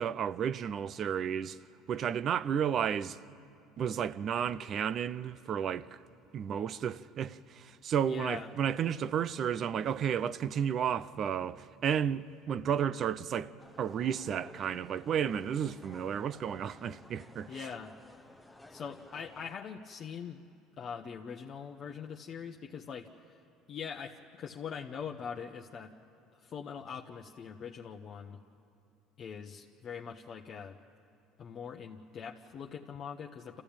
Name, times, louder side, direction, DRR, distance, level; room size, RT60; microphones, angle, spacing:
voice 1, 0.0-1.6 1.9-3.2 3.8-6.0 6.3-17.5, right 8 dB, 45° right, 0.6 m, -32 dB
voice 2, 8.1-8.5 17.5-17.9 18.7-20.4 20.8-23.4 23.7-25.9 26.3-28.4 29.2-30.8 31.4-33.6, left 7 dB, 45° left, 0.9 m, -42 dB
sound 1, 13.6-19.6, left 2 dB, 5° left, 0.9 m, -55 dB
27.0 x 15.0 x 8.8 m
supercardioid pair, 95°, 0 cm